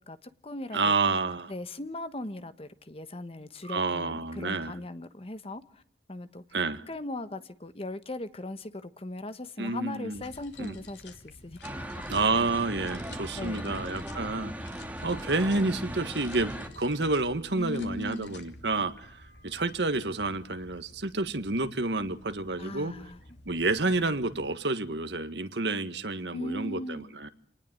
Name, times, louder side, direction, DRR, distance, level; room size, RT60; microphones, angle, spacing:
voice 1, 0.0-1.2 1.5-5.8 6.1-6.4 6.9-12.1 13.1-13.9 17.6-18.4 22.6-23.2 26.3-27.1, left 1 dB, 35° left, 12 dB, 1.2 m, -39 dB
voice 2, 0.7-1.5 3.6-4.7 6.5-6.8 9.6-10.2 10.6-10.8 12.1-19.1 19.4-22.9 23.5-27.3, right 3 dB, 75° right, 10 dB, 1.7 m, -29 dB
sound 1, 10.1-24.5, left 2 dB, 90° left, 2.9 m, -51 dB
bangalore arcade, 11.6-16.7, equal, 10° right, 2.1 m, -38 dB
27.5 x 19.0 x 9.4 m, 0.64 s
head